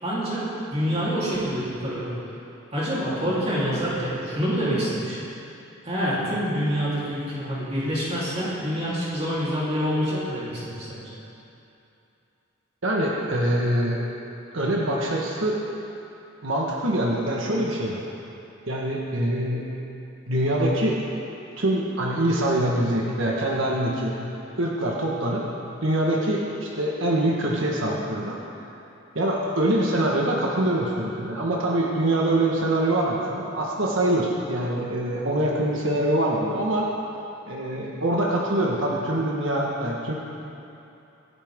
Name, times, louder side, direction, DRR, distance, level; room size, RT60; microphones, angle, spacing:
voice 1, 0.0-0.4 0.7-2.2 2.7-5.2 5.8-11.1, equal, 30° right, -9 dB, 3.7 m, -26 dB
voice 2, 12.8-14.0 14.5-15.6 16.4-18.0 18.7-19.7 20.3-21.0 21.6-24.2 24.6-25.4 25.8-28.4 29.1-36.9 37.5-40.1, right 1 dB, 70° right, -3 dB, 1.6 m, -24 dB
23.5 x 11.0 x 3.8 m, 2.8 s
head